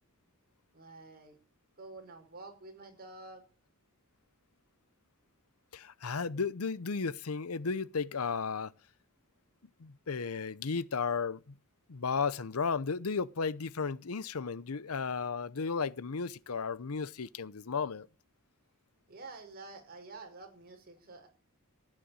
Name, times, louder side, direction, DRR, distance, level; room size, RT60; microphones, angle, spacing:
voice 1, 0.7-1.4 1.8-3.4 19.1-21.3, right 3 dB, 45° right, 5.6 m, -49 dB
voice 2, 5.7-8.7 9.8-11.5 11.9-18.1, left 5 dB, 80° left, 0.7 m, -34 dB
15.5 x 9.9 x 8.8 m
head